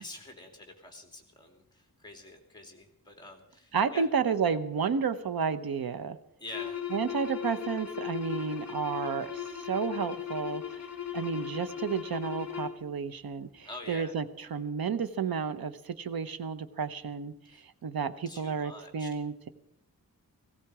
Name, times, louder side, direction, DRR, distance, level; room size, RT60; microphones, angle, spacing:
voice 1, 0.0-4.1 6.4-6.8 13.6-14.1 17.4-17.6 18.3-19.1, left 2 dB, 10° left, 3 dB, 2.9 m, -46 dB
voice 2, 3.7-6.2 6.9-10.8 11.1-17.3 17.8-19.5, right 6 dB, 75° right, 12 dB, 1.0 m, -31 dB
sound 1, 6.5-12.8, left 9 dB, 40° left, 3.1 m, -37 dB
18.0 x 16.5 x 4.9 m, 0.77 s
wide cardioid pair, 165°, 37 cm